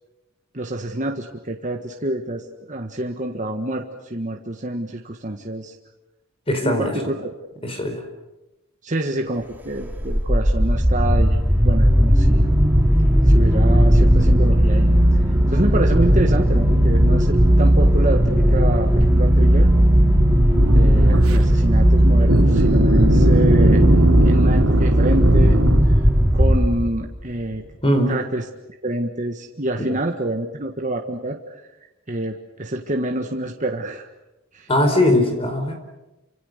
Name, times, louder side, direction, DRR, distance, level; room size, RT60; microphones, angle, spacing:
voice 1, 0.5-5.7 6.6-7.3 8.8-11.4 11.6-12.5 13.3-14.9 15.5-19.7 20.6-23.8 24.2-25.6 25.8-26.0 26.3-27.6 28.1-28.5 28.8-31.6 32.1-34.1 34.5-34.7, right 1 dB, 35° right, 2 dB, 1.6 m, -27 dB
voice 2, 6.5-7.0 7.6-8.0 27.8-28.2 34.7-35.7, left 1 dB, 25° left, 6 dB, 4.6 m, -19 dB
sound 1, 9.8-27.1, equal, 10° right, 2.4 m, -16 dB
sound 2, 20.5-21.4 22.3-25.8, right 1 dB, 90° right, 3.2 m, -21 dB
28.5 x 26.0 x 6.7 m, 0.99 s
head